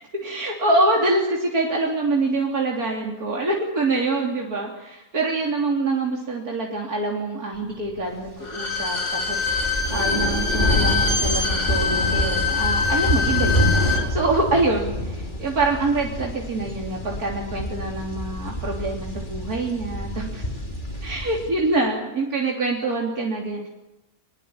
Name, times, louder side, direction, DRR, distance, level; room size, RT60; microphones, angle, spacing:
voice 1, 0.2-20.5 21.0-23.7, right 2 dB, 80° right, -1 dB, 3.9 m, -25 dB
Bowed string instrument, 8.4-14.1 14.4-14.5, left 5 dB, 65° left, 4.5 m, -24 dB
sound 1, 8.8-21.5, equal, 30° left, 3.8 m, -27 dB
25.0 x 22.0 x 8.9 m, 0.97 s
omnidirectional pair, 1.5 m